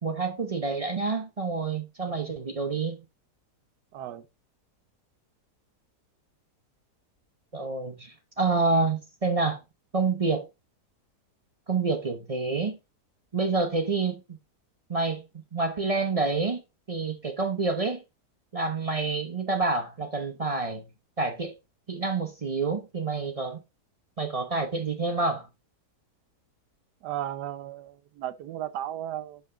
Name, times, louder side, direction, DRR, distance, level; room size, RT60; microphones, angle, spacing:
voice 1, 0.0-3.0 7.5-9.6 9.9-10.4 11.7-12.8 13.3-14.4 14.9-15.2 15.5-16.6 16.9-18.0 18.5-20.8 21.2-21.5 21.9-23.6 24.2-25.5, right 3 dB, 45° right, 0.4 m, -28 dB
voice 2, 2.0-2.3 3.9-4.3 27.0-29.4, right 11 dB, 80° right, 1.2 m, -35 dB
6.3 x 5.6 x 3.7 m
omnidirectional pair, 1.8 m